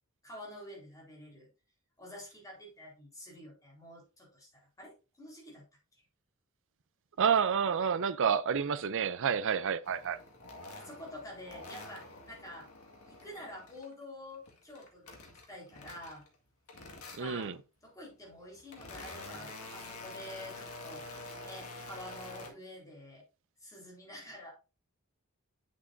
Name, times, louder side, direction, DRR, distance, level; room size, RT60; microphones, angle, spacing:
voice 1, 0.2-1.5 2.0-5.6 10.7-12.7 13.0-16.2 17.2-21.0 21.4-23.2 23.6-24.5, left 1 dB, 15° left, 4.0 m, -48 dB
voice 2, 7.2-10.2 17.2-17.6, right 7 dB, 60° right, 0.5 m, -29 dB
sound 1, 9.8-13.9 14.3-16.4 16.7-17.5 18.2-22.5, left 2 dB, 80° left, 1.9 m, -48 dB
8.7 x 7.3 x 2.6 m
head